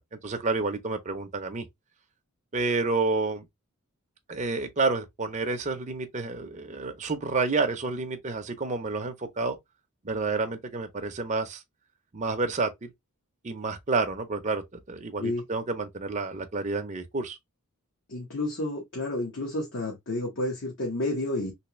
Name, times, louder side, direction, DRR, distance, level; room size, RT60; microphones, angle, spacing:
voice 1, 0.2-1.7 2.5-3.4 4.3-9.6 10.0-11.6 12.1-12.9 13.4-17.4, right 3 dB, 30° right, 0.6 m, -29 dB
voice 2, 18.1-21.5, left 2 dB, 55° left, 1.1 m, -30 dB
3.3 x 2.9 x 3.0 m
head